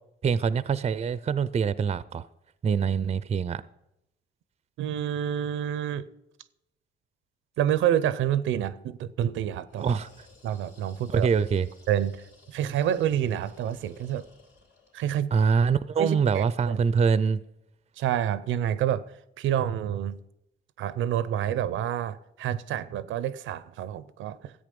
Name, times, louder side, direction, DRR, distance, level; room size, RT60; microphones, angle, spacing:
voice 1, 0.2-2.2 2.6-3.6 9.8-10.1 11.1-11.7 15.3-17.4, right 6 dB, 30° right, 0.5 m, -24 dB
voice 2, 4.8-6.1 7.6-10.0 10.4-11.3 11.9-14.3 14.9-15.3 16.0-16.8 18.0-20.2 20.8-24.5, right 10 dB, 80° right, 0.6 m, -28 dB
sound 1, 9.7-15.0, left 3 dB, 70° left, 3.5 m, -56 dB
13.5 x 8.3 x 5.3 m
cardioid pair, 90°, 20 cm